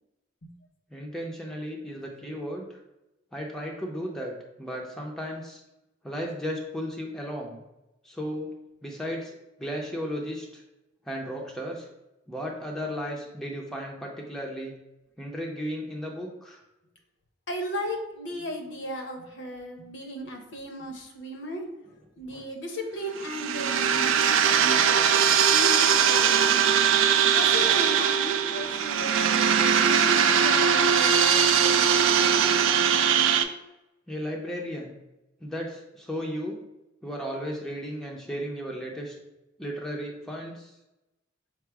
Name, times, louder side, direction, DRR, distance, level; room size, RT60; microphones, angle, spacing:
voice 1, 0.9-2.8 3.3-4.3 4.6-5.6 6.0-7.6 8.0-8.5 8.8-10.6 11.1-11.9 12.3-14.7 15.2-16.6 22.3-22.5 34.1-35.0 35.4-36.6 37.0-39.2 39.6-40.7, equal, ahead, -1 dB, 0.5 m, -35 dB
voice 2, 17.5-21.6 22.2-26.5 27.0-32.7, equal, 60° left, 3 dB, 0.7 m, -36 dB
sound 1, 23.2-33.4, right 7 dB, 70° right, 0.4 m, -21 dB
5.7 x 2.0 x 4.6 m, 0.94 s
head